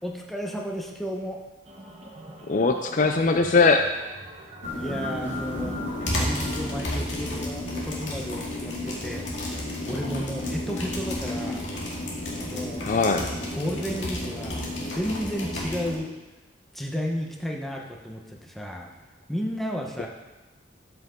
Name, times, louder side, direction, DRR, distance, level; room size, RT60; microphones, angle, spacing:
voice 1, 0.0-1.4 4.7-9.6 9.8-11.7 12.5-12.8 13.5-16.1 16.7-18.9 19.3-20.1, equal, ahead, 0 dB, 1.0 m, -33 dB
sound 1, 1.7-6.8, left 1 dB, 35° right, 1.2 m, -40 dB
voice 2, 2.5-3.8 12.8-13.3, left 4 dB, 45° left, 6 dB, 0.4 m, -20 dB
sound 2, 4.6-15.9, left 1 dB, 85° left, 2.1 m, -32 dB
12.5 x 5.8 x 3.8 m, 1.1 s
head